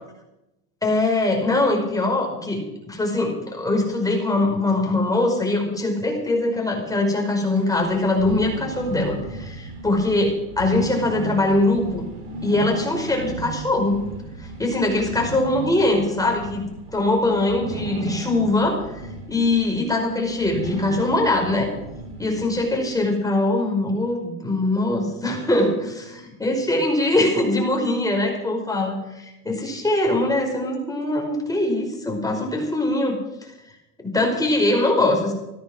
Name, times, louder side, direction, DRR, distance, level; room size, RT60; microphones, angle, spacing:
voice 1, 0.8-12.1 12.4-14.0 14.4-16.6 16.9-21.7 22.2-33.2 34.0-35.3, left 2 dB, 10° left, 1 dB, 5.3 m, -22 dB
sound 1, 7.6-23.0, right 3 dB, 65° right, 6.8 m, -35 dB
15.5 x 13.0 x 6.3 m, 0.93 s
supercardioid pair, 110°, 45 cm